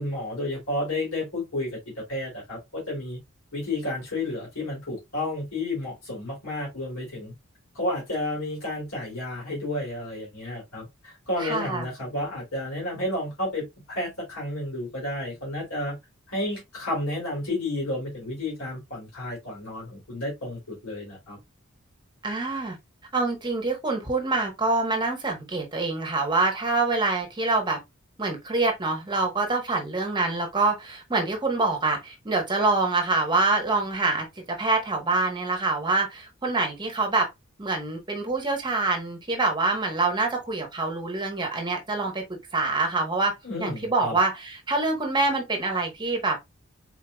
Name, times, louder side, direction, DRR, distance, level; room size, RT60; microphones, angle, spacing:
voice 1, 0.0-1.8 2.1-3.2 3.5-7.3 7.7-16.0 16.3-21.4 43.4-44.2, left 1 dB, 85° left, 2.9 m, -31 dB
voice 2, 11.4-11.9 22.2-22.8 23.1-27.8 28.2-34.3 34.6-37.3 37.6-42.2 42.5-46.4, right 3 dB, 20° right, 1.1 m, -25 dB
4.6 x 4.1 x 2.3 m
head